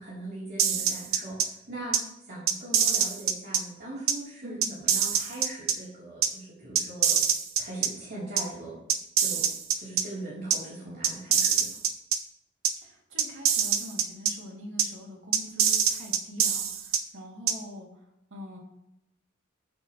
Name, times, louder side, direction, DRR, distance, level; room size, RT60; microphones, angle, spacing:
voice 1, 0.0-2.0 2.2-7.2 7.6-8.8 9.2-9.5 9.8-11.8, right 2 dB, 50° right, -8 dB, 3.6 m, -40 dB
sound 1, 0.6-1.4 1.9-2.0 2.5-3.6 4.1-4.2 4.6-5.7 6.2-6.3 6.7-7.9 8.4-8.5 8.9-10.0 10.5-10.6 11.0-12.2 12.6-12.7 13.2-14.3 14.8-14.9 15.3-17.0 17.5-17.6, right 8 dB, 80° right, 1.0 m, -24 dB
voice 2, 4.4-4.7 12.8-18.0 18.3-18.6, left 1 dB, 65° right, -2 dB, 2.7 m, -43 dB
13.5 x 7.9 x 3.2 m, 0.83 s
head